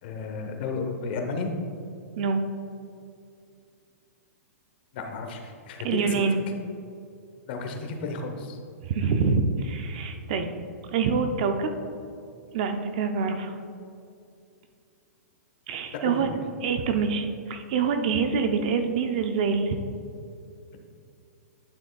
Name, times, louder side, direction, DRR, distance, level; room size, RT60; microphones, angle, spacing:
voice 1, 0.0-1.5 4.9-6.2 7.5-8.6 15.9-16.4, left 4 dB, 35° left, 4 dB, 0.8 m, -33 dB
voice 2, 5.8-6.4 8.8-10.5 10.9-11.7 12.5-13.6 15.7-19.8, right 5 dB, 30° right, 6 dB, 0.4 m, -26 dB
11.0 x 6.1 x 2.3 m, 2.5 s
hypercardioid pair, 170°, 8 cm